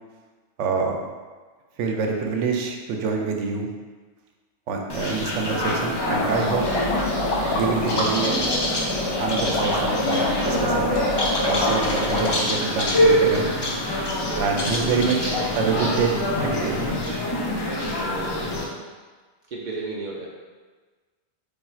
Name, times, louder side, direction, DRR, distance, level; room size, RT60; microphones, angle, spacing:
voice 1, 0.6-1.0 1.8-3.7 4.7-6.6 7.5-8.4 9.2-10.9 11.4-13.5 14.4-16.1 16.4-16.7, right 4 dB, 85° right, 2 dB, 0.9 m, -26 dB
sound 1, 4.9-18.6, left 1 dB, 40° left, 0.3 m, -25 dB
sound 2, 6.1-12.4, left 1 dB, 70° left, 0.9 m, -26 dB
voice 2, 11.5-12.4 14.1-16.1 16.7-16.9 17.5-18.7 19.5-20.3, right 2 dB, 60° right, -2 dB, 0.5 m, -35 dB
3.4 x 2.3 x 4.2 m, 1.4 s
omnidirectional pair, 1.2 m